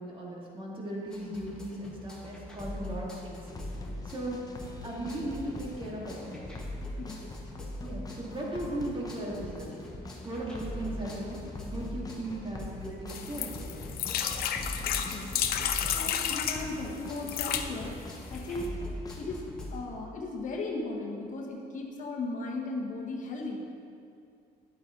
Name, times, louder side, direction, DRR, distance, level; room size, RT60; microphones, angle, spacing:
voice 1, 0.0-6.4 7.8-9.7 10.2-13.9, right 1 dB, 30° right, -3 dB, 2.3 m, -37 dB
sound 1, 1.1-19.8, left 1 dB, 5° left, 1.7 m, -42 dB
sound 2, 3.5-19.4, left 2 dB, 20° left, 0.9 m, -45 dB
sound 3, 13.1-16.6 17.2-17.7 18.3-18.4 18.6-18.7, left 9 dB, 65° left, 0.7 m, -31 dB
voice 2, 15.9-18.7 19.2-23.7, left 2 dB, 50° left, -1 dB, 1.3 m, -36 dB
10.5 x 8.3 x 3.9 m, 2.4 s
cardioid pair, 110°, 17 cm